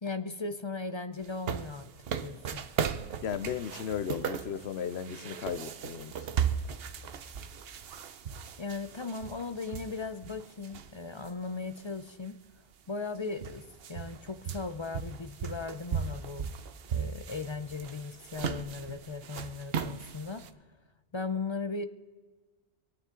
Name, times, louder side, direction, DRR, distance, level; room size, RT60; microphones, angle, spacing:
voice 1, 0.0-1.9 2.2-2.6 8.6-12.4 12.9-16.5 16.9-20.4 21.1-21.8, left 4 dB, 35° left, 0.5 m, -37 dB
sound 1, 1.2-11.3 11.7-11.8 12.7-12.8 13.0-20.5, right 7 dB, 65° right, 0.9 m, -37 dB
voice 2, 3.2-6.3, left 8 dB, 70° left, 0.9 m, -35 dB
26.5 x 9.1 x 3.8 m
omnidirectional pair, 1.1 m